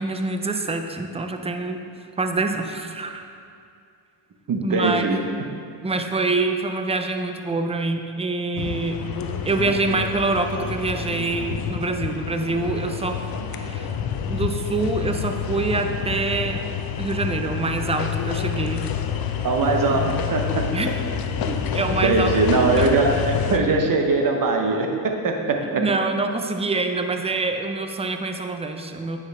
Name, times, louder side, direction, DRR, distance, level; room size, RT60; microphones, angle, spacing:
voice 1, 0.0-1.9 2.2-3.3 4.6-5.1 5.8-9.0 9.4-13.2 13.5-14.0 14.3-16.7 17.0-18.8 19.9-20.2 20.7-20.9 21.4-22.3 22.8-23.0 25.8-29.2, right 3 dB, 15° right, 5 dB, 0.5 m, -25 dB
voice 2, 4.5-5.2 19.4-20.9 22.0-25.8, right 3 dB, 40° right, 2 dB, 1.0 m, -21 dB
sound 1, 8.6-23.6, left 7 dB, 45° left, 0.6 m, -28 dB
9.1 x 4.9 x 3.4 m, 2.4 s
supercardioid pair, 75°, 49 cm